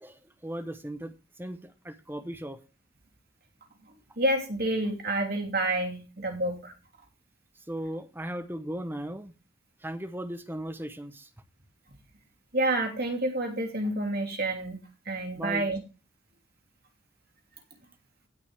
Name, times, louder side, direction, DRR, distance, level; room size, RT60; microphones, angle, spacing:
voice 1, 0.0-2.6 7.7-9.3 9.8-11.3 15.4-15.7, right 1 dB, 10° right, 11 dB, 0.8 m, -37 dB
voice 2, 4.2-6.7 12.5-14.8 15.1-15.8, right 1 dB, 50° right, 1 dB, 3.1 m, -28 dB
17.0 x 5.9 x 3.4 m, 0.29 s
head